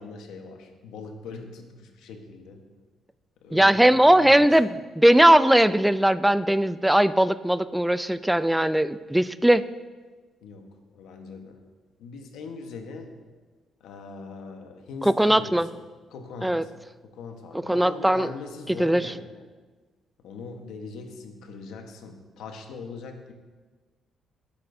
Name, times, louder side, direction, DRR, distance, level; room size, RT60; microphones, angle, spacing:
voice 1, 0.0-2.7 3.4-4.5 10.4-11.6 12.0-13.1 13.8-15.8 16.1-16.7 17.0-19.5 20.2-23.3, left 4 dB, 85° left, 4 dB, 1.2 m, -41 dB
voice 2, 3.5-9.6 15.0-15.7 16.4-16.6 17.7-18.3 18.8-19.1, right 1 dB, 5° right, 13 dB, 0.4 m, -19 dB
17.0 x 8.5 x 2.7 m, 1.3 s
cardioid pair, 90°, 0 cm